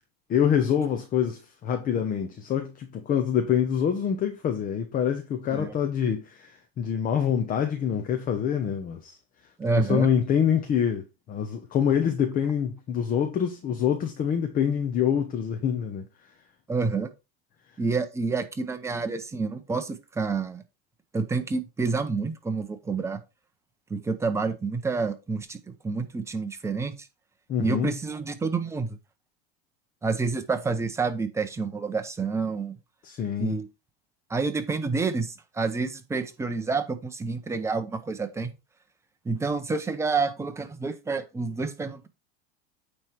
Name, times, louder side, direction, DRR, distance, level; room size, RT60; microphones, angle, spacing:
voice 1, 0.3-9.2 9.8-16.0 27.5-27.9 33.0-33.6, left 8 dB, 25° left, 0.9 m, -26 dB
voice 2, 9.6-10.1 16.7-17.1 17.8-20.6 21.1-23.2 23.9-26.9 27.6-29.0 30.0-32.8 33.4-33.7 34.3-38.5 39.2-42.1, right 4 dB, 10° right, 0.8 m, -28 dB
9.1 x 3.4 x 4.5 m
supercardioid pair, 135°, 31 cm